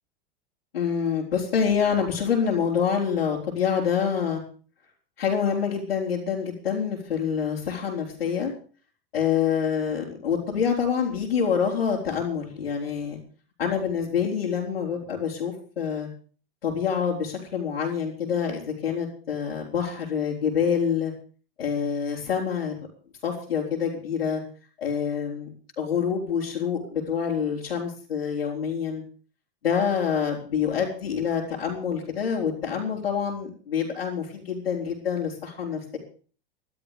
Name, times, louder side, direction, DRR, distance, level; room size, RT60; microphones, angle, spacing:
voice 1, 0.7-4.4 5.2-8.5 9.1-13.2 13.6-16.1 16.6-21.1 21.6-22.7 23.2-24.4 24.8-29.0 29.6-36.0, left 7 dB, 85° left, -5 dB, 4.5 m, -26 dB
14.0 x 12.0 x 6.8 m, 0.42 s
hypercardioid pair, 105°, 29 cm